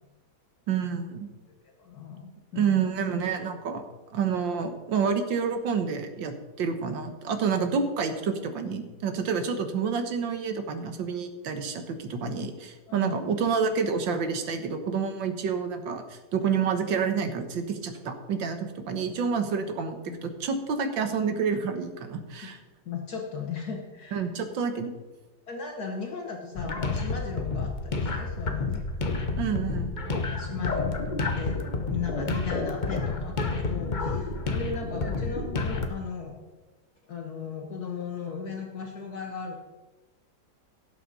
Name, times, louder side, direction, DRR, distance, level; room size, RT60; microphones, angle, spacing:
voice 1, 0.7-1.3 2.5-3.9 4.1-16.0 16.3-22.6 24.1-24.9 29.4-29.9, right 6 dB, 75° right, 7 dB, 1.8 m, -28 dB
voice 2, 1.8-2.8 12.9-13.3 20.1-20.2 22.8-24.3 25.5-28.8 30.3-31.6 31.9-36.3 37.1-39.6, left 5 dB, 55° left, 1 dB, 1.6 m, -36 dB
sound 1, 26.6-35.9, left 3 dB, 35° left, 0.7 m, -30 dB
17.0 x 7.6 x 4.1 m, 1.2 s
omnidirectional pair, 2.1 m